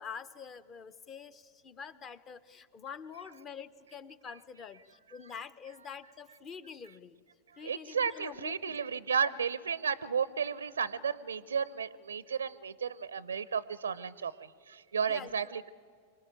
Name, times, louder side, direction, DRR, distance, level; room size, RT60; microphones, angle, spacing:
voice 1, 0.0-7.2 7.6-8.8 15.0-15.5, left 6 dB, 30° left, 16 dB, 0.8 m, -46 dB
voice 2, 7.6-15.7, right 6 dB, 70° right, 20 dB, 0.5 m, -33 dB
26.0 x 18.5 x 9.0 m, 2.2 s
figure-of-eight pair, 90°, 0 cm